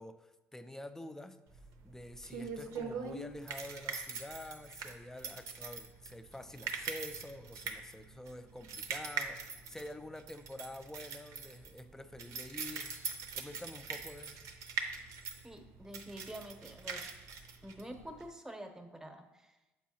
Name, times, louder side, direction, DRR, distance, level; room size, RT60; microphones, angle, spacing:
voice 1, 0.0-1.4 1.8-13.0 13.4-14.5, left 1 dB, 10° left, 10 dB, 0.4 m, -48 dB
sound 1, 1.5-18.3, right 5 dB, 70° right, 0.7 m, -42 dB
voice 2, 15.4-17.0 17.6-19.6, right 1 dB, 10° right, 5 dB, 0.8 m, -47 dB
7.3 x 4.6 x 2.8 m, 1.1 s
supercardioid pair, 70°, 6 cm